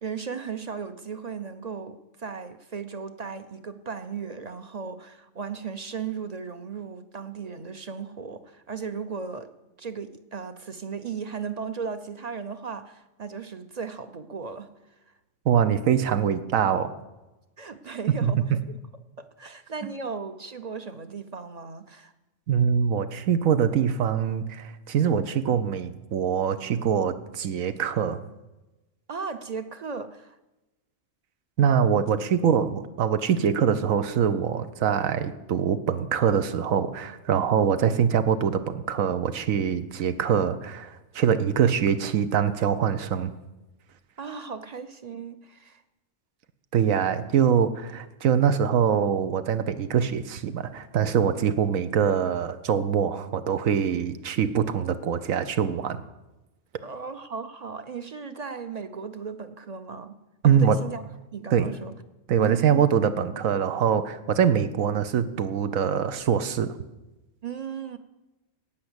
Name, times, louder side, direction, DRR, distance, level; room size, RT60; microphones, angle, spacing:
voice 1, 0.0-9.5 9.8-14.7 17.6-18.8 19.2-22.1 29.1-30.4 32.7-32.8 37.7-37.8 44.2-45.8 56.8-60.2 60.4-61.0 61.3-61.9 62.4-62.8 67.4-68.0, right 5 dB, 40° right, 0.6 m, -36 dB
voice 2, 15.5-16.9 18.2-18.3 22.5-28.2 31.6-43.3 46.7-56.0 60.4-60.8 61.5-61.7 62.3-66.8, right 8 dB, 85° right, 1.2 m, -24 dB
17.5 x 5.8 x 8.0 m
omnidirectional pair, 1.4 m